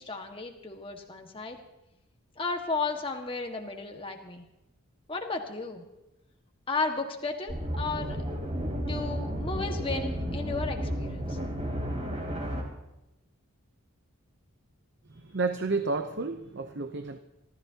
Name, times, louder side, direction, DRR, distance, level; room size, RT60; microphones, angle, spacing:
voice 1, 0.0-1.6 2.4-4.4 5.1-5.8 6.7-8.2 8.8-11.4, left 3 dB, 25° left, 3 dB, 1.7 m, -34 dB
sound 1, 7.5-12.6, equal, 30° right, 3.5 m, -32 dB
voice 2, 15.1-17.2, right 3 dB, 50° right, 7 dB, 0.8 m, -31 dB
28.5 x 14.0 x 2.9 m, 0.93 s
head